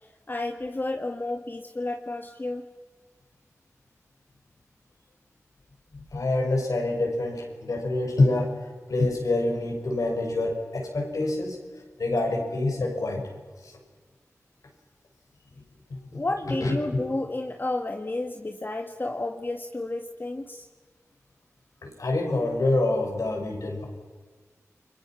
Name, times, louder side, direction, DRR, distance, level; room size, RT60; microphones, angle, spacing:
voice 1, 0.3-2.6 16.1-20.6, left 2 dB, 35° left, 4 dB, 1.5 m, -31 dB
voice 2, 5.9-13.3 13.6-13.7 15.5-15.6 15.9-17.0 21.8-23.8, left 2 dB, 85° left, 2 dB, 5.8 m, -27 dB
30.0 x 23.0 x 6.0 m, 1.4 s
wide cardioid pair, 55°, 6 cm